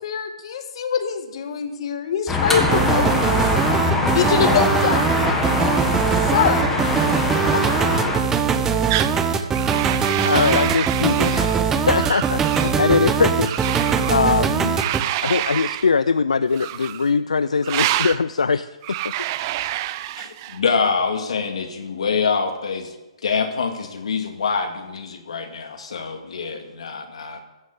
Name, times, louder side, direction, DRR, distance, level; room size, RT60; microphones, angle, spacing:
voice 1, 0.0-3.4 4.0-5.7 6.2-6.6 7.5-7.6, left 7 dB, 55° left, 7 dB, 1.6 m, -24 dB
sound 1, 2.3-8.2, left 2 dB, 5° left, 1.8 m, -22 dB
sound 2, 2.6-15.0, right 6 dB, 15° right, 0.9 m, -21 dB
sound 3, 8.9-9.2 9.5-11.6 11.9-12.8 13.4-14.2 14.8-15.9 16.5-17.1 17.6-18.2 18.8-20.6, right 14 dB, 35° right, 0.5 m, -27 dB
voice 2, 10.2-14.8 15.2-18.8 19.0-19.1, left 5 dB, 85° left, 14 dB, 0.4 m, -22 dB
voice 3, 20.2-22.9 23.2-27.4, left 5 dB, 70° left, 5 dB, 2.2 m, -25 dB
15.0 x 6.4 x 8.1 m, 1.1 s
hypercardioid pair, 140°, 3 cm